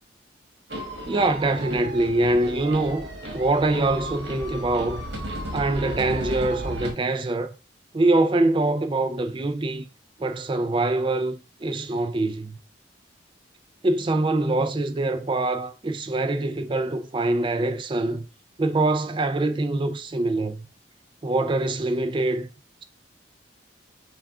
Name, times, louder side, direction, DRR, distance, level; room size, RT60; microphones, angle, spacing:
sound 1, 0.7-6.9, right 1 dB, 65° right, 1.3 m, -34 dB
voice 1, 1.1-5.0 5.5-7.5 7.9-9.9 10.2-12.6 13.8-18.3 18.6-20.7 21.2-22.5, right 2 dB, 25° right, 0.4 m, -24 dB
6.1 x 2.4 x 3.5 m
head